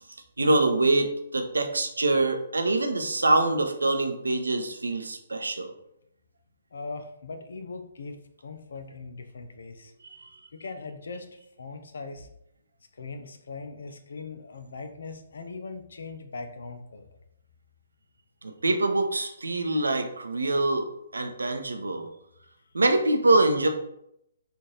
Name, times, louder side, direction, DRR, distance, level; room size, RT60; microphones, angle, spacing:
voice 1, 0.4-5.7 10.1-10.3 18.4-22.1 22.7-23.7, right 2 dB, 80° right, 5 dB, 0.6 m, -24 dB
voice 2, 6.7-9.9 10.5-12.3 13.0-17.0, left 3 dB, 65° left, 6 dB, 0.6 m, -40 dB
3.2 x 2.6 x 3.9 m, 0.78 s
figure-of-eight pair, 135°, 0 cm